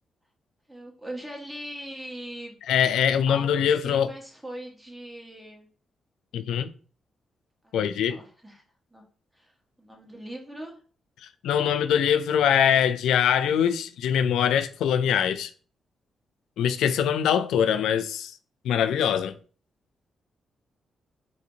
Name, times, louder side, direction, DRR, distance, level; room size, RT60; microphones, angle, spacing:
voice 1, 0.7-2.5 3.3-5.7 7.6-7.7 8.1-8.6 8.9-9.0 9.3-10.8, right 1 dB, 10° right, 1.5 m, -40 dB
voice 2, 2.7-4.1 6.3-6.7 7.7-8.2 11.4-15.5 16.6-18.3 18.6-19.4, left 8 dB, 85° left, 0.4 m, -23 dB
4.9 x 2.6 x 2.8 m
cardioid pair, 70°, 0 cm